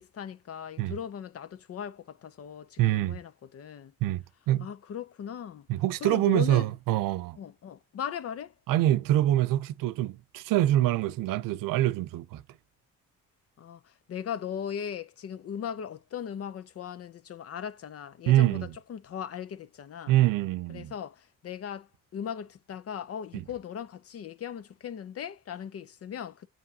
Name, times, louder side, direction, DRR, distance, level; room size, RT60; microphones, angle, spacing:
voice 1, 0.0-3.9 4.6-5.7 6.0-6.7 7.4-8.5 13.6-20.1 20.7-26.5, left 8 dB, 45° left, 0.6 m, -38 dB
voice 2, 2.8-3.2 4.0-4.7 5.7-7.4 8.7-12.4 18.3-18.7 20.1-20.9 23.3-23.4, right 14 dB, 85° right, 0.6 m, -25 dB
7.7 x 5.0 x 2.7 m
cardioid pair, 90°, 32 cm